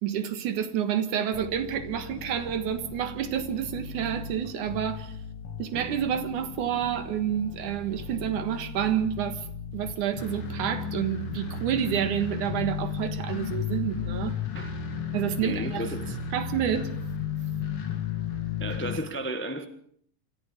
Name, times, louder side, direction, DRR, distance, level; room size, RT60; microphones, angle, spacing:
voice 1, 0.0-5.1 5.6-9.5 9.7-14.4 15.1-15.9 16.3-16.9, right 9 dB, 85° right, 3.0 m, -29 dB
sound 1, 1.3-19.0, left 6 dB, 50° left, 2.9 m, -35 dB
voice 2, 15.4-16.2 18.6-19.6, right 1 dB, 15° left, 0.3 m, -33 dB
26.5 x 14.5 x 7.3 m
omnidirectional pair, 3.5 m